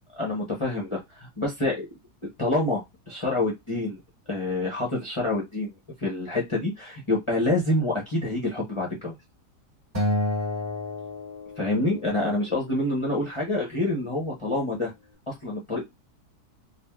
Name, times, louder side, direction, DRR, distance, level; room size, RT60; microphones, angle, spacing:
voice 1, 0.2-1.9 2.4-4.0 4.3-5.7 6.0-9.2 11.6-14.9 15.3-15.8, left 2 dB, 30° left, -2 dB, 0.5 m, -27 dB
Acoustic guitar, 9.9-12.3, left 1 dB, 25° right, 1.5 m, -29 dB
3.3 x 2.3 x 2.2 m, 0.19 s
omnidirectional pair, 1.7 m